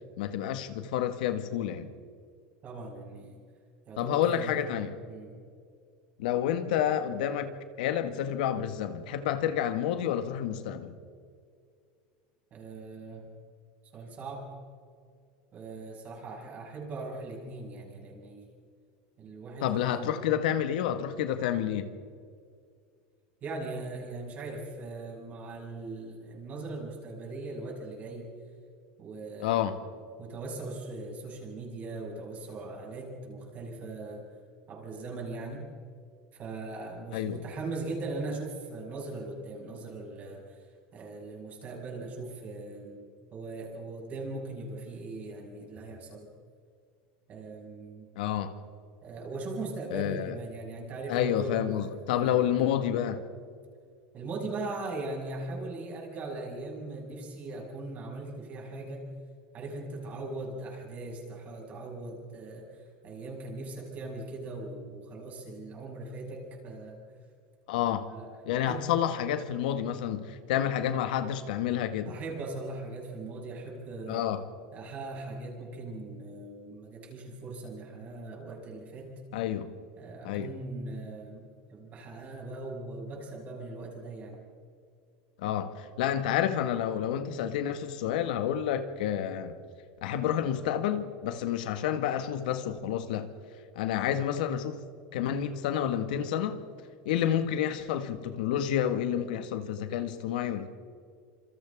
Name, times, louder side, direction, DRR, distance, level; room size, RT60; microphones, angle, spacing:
voice 1, 0.2-1.9 4.0-5.0 6.2-7.5 7.8-10.9 19.6-21.9 29.4-29.8 37.1-37.4 48.2-48.5 49.9-50.3 51.1-53.2 67.7-68.1 68.5-72.1 74.1-74.4 79.3-79.7 80.2-80.5 85.4-89.5 90.0-93.3 93.8-94.8 95.1-96.6 97.1-100.7, left 10 dB, 85° left, 1.6 m, -29 dB
voice 2, 2.6-3.4 3.9-4.6 5.1-5.3 12.5-13.2 13.9-14.5 15.5-18.5 19.2-20.1 23.4-28.3 29.0-29.8 30.2-34.3 34.7-35.7 36.3-40.6 40.9-43.0 43.3-46.3 47.3-48.1 49.0-52.7 54.1-59.1 59.5-62.7 63.0-67.0 68.1-68.3 68.6-68.9 72.0-74.3 74.7-79.1 80.0-84.4, right 2 dB, 35° right, 6.4 m, -40 dB
27.0 x 26.0 x 3.7 m
supercardioid pair, 140°, 5 cm